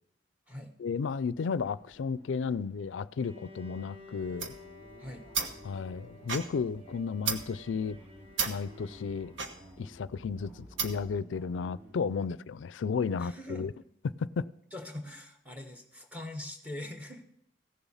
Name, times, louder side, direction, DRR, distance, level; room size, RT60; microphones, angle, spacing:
voice 1, 0.8-4.5 5.6-8.0 8.5-9.3 9.8-13.7 14.0-14.4, left 5 dB, 85° left, 0.4 m, -33 dB
sound 1, 1.5-12.3, equal, 50° right, 3.9 m, -56 dB
Bowed string instrument, 3.2-9.9, left 3 dB, 30° right, 1.6 m, -53 dB
sound 2, 4.2-11.2, right 5 dB, 90° right, 1.1 m, -37 dB
voice 2, 13.2-13.7 14.7-17.3, left 1 dB, 10° right, 1.2 m, -42 dB
15.5 x 7.1 x 5.6 m
head